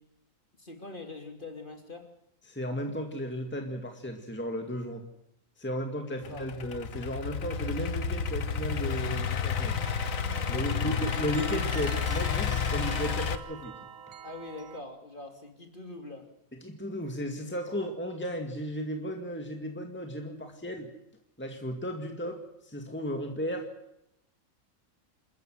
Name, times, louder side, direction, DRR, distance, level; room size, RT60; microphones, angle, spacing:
voice 1, 0.6-2.1 6.1-6.4 10.5-10.8 14.2-16.3, left 2 dB, 35° left, 4 dB, 3.2 m, -43 dB
voice 2, 2.5-5.0 5.6-9.8 10.5-13.7 16.6-20.9 21.4-23.7, equal, 10° left, 3 dB, 2.1 m, -35 dB
Idling / Accelerating revving vroom, 6.2-13.4, left 6 dB, 75° left, 1.5 m, -31 dB
sound 1, 9.6-14.8, right 8 dB, 75° right, 1.6 m, -45 dB
27.5 x 14.0 x 7.8 m, 0.81 s
omnidirectional pair, 1.4 m